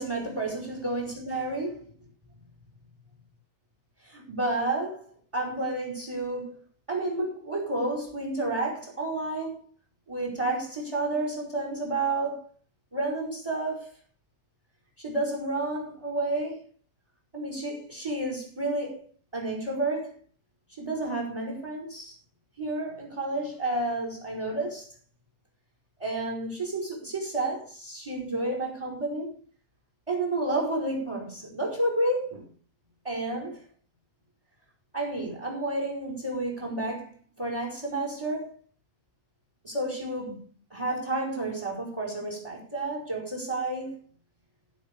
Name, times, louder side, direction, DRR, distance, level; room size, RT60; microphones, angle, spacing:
voice 1, 0.0-1.8 4.0-5.0 5.3-6.6 6.9-9.6 10.1-12.5 12.9-14.0 15.0-16.6 17.3-19.0 19.3-20.2 20.8-22.1 22.6-24.9 26.0-29.3 30.1-32.5 33.0-33.6 34.9-38.6 39.6-40.4 40.7-44.0, right 2 dB, 20° right, 4.8 m, -31 dB
17.0 x 7.5 x 5.1 m
omnidirectional pair, 1.7 m